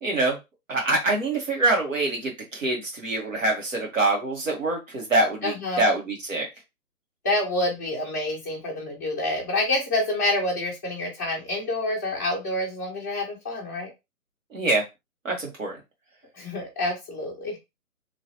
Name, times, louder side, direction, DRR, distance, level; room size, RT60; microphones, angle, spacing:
voice 1, 0.0-0.4 0.7-6.5 14.5-14.8 15.3-15.8, right 2 dB, 60° right, 0 dB, 1.7 m, -25 dB
voice 2, 5.4-5.9 7.2-13.9 16.4-17.6, left 1 dB, 15° left, -3 dB, 0.6 m, -27 dB
3.0 x 2.9 x 2.9 m, 0.22 s
figure-of-eight pair, 140°, 44 cm